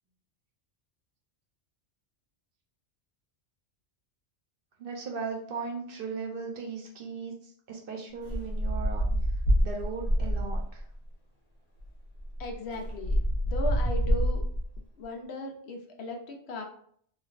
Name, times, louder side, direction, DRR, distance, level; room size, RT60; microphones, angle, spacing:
voice 1, 4.8-9.2 9.6-10.8, right 4 dB, 60° right, 1 dB, 0.7 m, -37 dB
sound 1, 8.2-10.8 11.8-11.9 12.1-14.8, equal, 40° left, 0.9 m, -27 dB
voice 2, 12.4-13.2 13.5-14.4 15.0-16.6, left 2 dB, 70° left, 2 dB, 0.8 m, -37 dB
3.2 x 2.2 x 2.4 m, 0.62 s
omnidirectional pair, 1.2 m